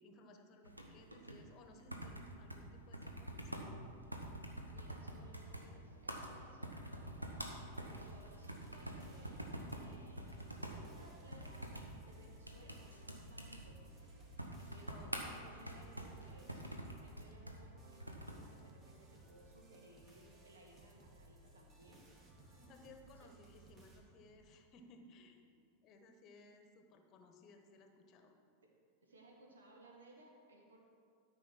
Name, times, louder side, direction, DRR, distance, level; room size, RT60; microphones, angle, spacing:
voice 1, 0.0-3.7 14.9-15.1 22.4-25.4 25.8-28.3, left 2 dB, 35° left, 5 dB, 1.2 m, -60 dB
sound 1, 0.6-18.5, right 1 dB, 85° right, 1.0 m, -47 dB
voice 2, 4.7-7.2 7.8-9.4 9.7-10.4 10.7-11.7 12.1-14.2 14.7-16.7 17.0-22.1 23.0-23.3 28.6-28.7 29.0-30.8, right 2 dB, 70° right, 0 dB, 1.8 m, -62 dB
sound 2, 7.6-24.0, right 2 dB, 25° right, 1.9 m, -62 dB
13.0 x 5.5 x 5.9 m, 2.2 s
figure-of-eight pair, 90°, 0 cm